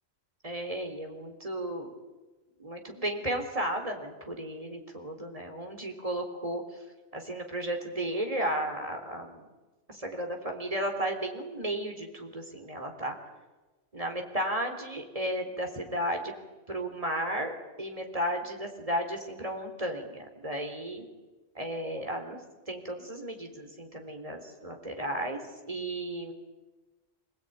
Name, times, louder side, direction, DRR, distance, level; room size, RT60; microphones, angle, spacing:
voice 1, 0.4-1.9 2.6-6.8 7.1-9.4 9.9-13.2 13.9-16.3 16.7-17.5 17.8-21.1 21.5-22.4 22.7-26.3, right 1 dB, 30° right, 4 dB, 3.9 m, -34 dB
26.5 x 18.5 x 9.4 m, 1.2 s
omnidirectional pair, 1.3 m